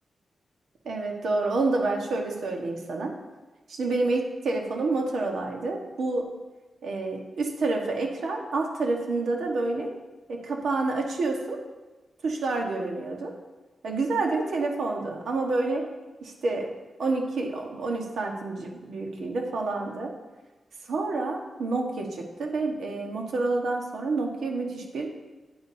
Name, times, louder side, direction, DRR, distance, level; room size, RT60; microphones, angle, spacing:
voice 1, 0.8-3.1 3.7-6.2 6.8-9.9 10.3-11.6 12.2-13.3 13.8-15.8 16.2-16.7 17.0-20.1 20.9-25.1, right 3 dB, 85° right, 1 dB, 1.4 m, -28 dB
10.0 x 9.7 x 2.8 m, 1.2 s
wide cardioid pair, 120°, 0 cm